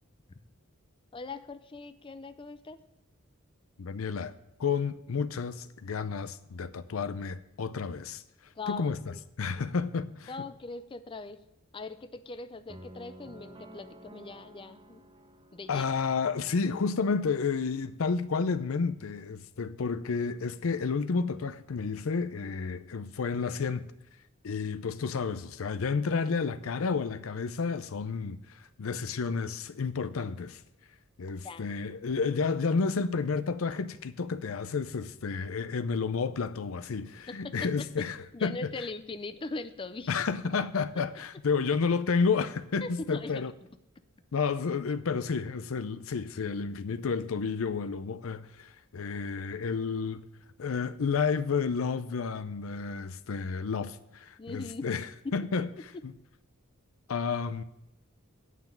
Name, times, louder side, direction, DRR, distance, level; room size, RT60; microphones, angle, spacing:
voice 1, 1.1-2.8 8.6-9.2 10.3-11.4 11.7-15.0 15.5-15.9 31.4-31.7 37.3-37.9 38.3-40.1 42.8-43.4 54.4-54.9 55.2-55.4, left 3 dB, 25° left, 0.4 m, -40 dB
voice 2, 3.8-4.3 4.6-8.2 8.7-10.3 15.7-23.9 24.4-30.6 31.2-38.5 40.1-43.5 44.3-50.3 50.6-55.1 55.3-55.7 56.0-56.1 57.1-57.6, left 5 dB, 75° left, 0.5 m, -31 dB
sound 1, 12.7-16.8, right 1 dB, 25° right, 0.7 m, -51 dB
9.3 x 5.9 x 7.4 m
head